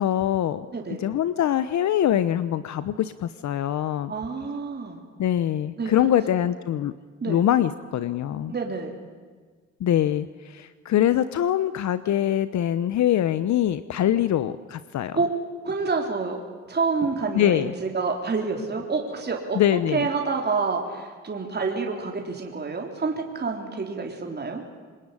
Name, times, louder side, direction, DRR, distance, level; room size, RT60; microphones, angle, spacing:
voice 1, 0.0-0.7 1.0-4.1 5.2-6.9 7.2-8.5 9.8-15.2 17.3-17.7 19.5-20.1, left 11 dB, 65° left, 14 dB, 1.0 m, -23 dB
voice 2, 4.1-5.0 5.8-5.9 7.2-7.4 8.5-8.9 15.1-15.3 15.6-16.4 16.7-19.6 19.9-24.6, right 4 dB, 35° right, 2 dB, 3.7 m, -28 dB
26.5 x 20.5 x 9.9 m, 1.5 s
cardioid pair, 90°, 30 cm